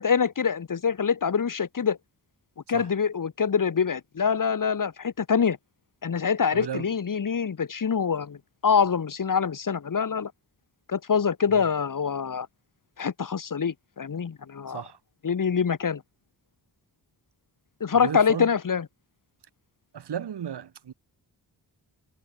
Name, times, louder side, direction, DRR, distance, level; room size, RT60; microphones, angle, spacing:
voice 1, 0.0-2.0 2.7-5.6 6.0-8.4 8.6-10.3 10.9-12.5 13.0-14.8 15.2-16.0 17.8-18.9, left 6 dB, 50° left, 4.1 m, -25 dB
voice 2, 6.5-7.0 11.5-11.6 14.7-15.0 17.9-18.5 19.9-20.9, right 9 dB, 75° right, 2.6 m, -35 dB
wide cardioid pair, 145°, 40 cm